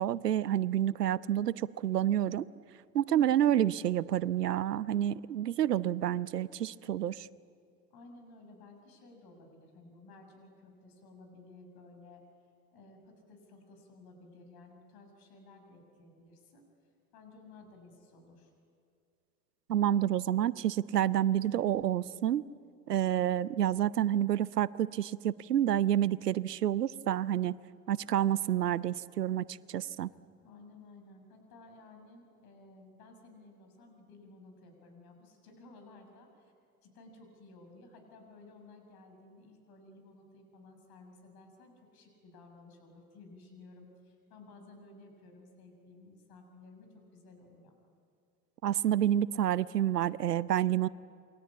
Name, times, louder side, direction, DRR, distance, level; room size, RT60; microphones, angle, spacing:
voice 1, 0.0-2.5 2.9-7.3 19.7-22.4 22.9-27.5 27.9-30.1 48.6-50.9, right 11 dB, 85° right, 19 dB, 0.7 m, -29 dB
voice 2, 7.9-12.2 12.7-16.6 17.1-18.5 30.4-36.5 36.8-47.7, left 2 dB, 50° left, 5 dB, 6.8 m, -55 dB
28.5 x 23.5 x 8.6 m, 2.3 s
figure-of-eight pair, 70°, 46 cm